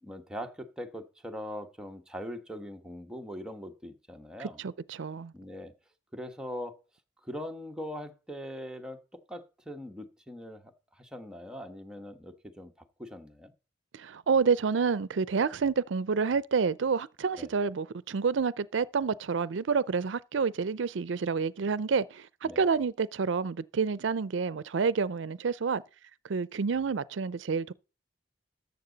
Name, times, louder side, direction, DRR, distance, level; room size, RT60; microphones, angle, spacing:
voice 1, 0.0-4.6 5.3-5.7 6.1-6.8 7.2-9.0 9.3-12.7 13.0-13.5 17.4-17.5 22.4-22.6, equal, 5° right, 1.1 m, -41 dB
voice 2, 4.4-5.3 13.9-25.8 26.2-27.7, right 5 dB, 80° right, 0.5 m, -29 dB
13.5 x 8.0 x 4.0 m
head